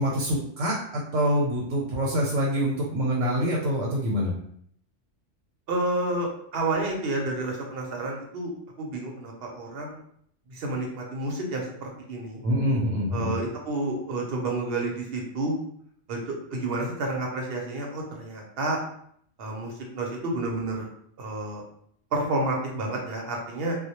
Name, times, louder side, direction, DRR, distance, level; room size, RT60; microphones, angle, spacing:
voice 1, 0.0-4.3 12.4-13.3, equal, 85° right, -3 dB, 1.0 m, -25 dB
voice 2, 5.7-8.5 8.8-10.0 10.5-12.4 13.1-15.6 16.1-16.2 16.5-18.8 19.4-20.9 21.2-21.6 22.1-23.8, right 2 dB, 60° right, 0 dB, 0.8 m, -30 dB
2.2 x 2.1 x 2.8 m, 0.66 s
omnidirectional pair, 1.2 m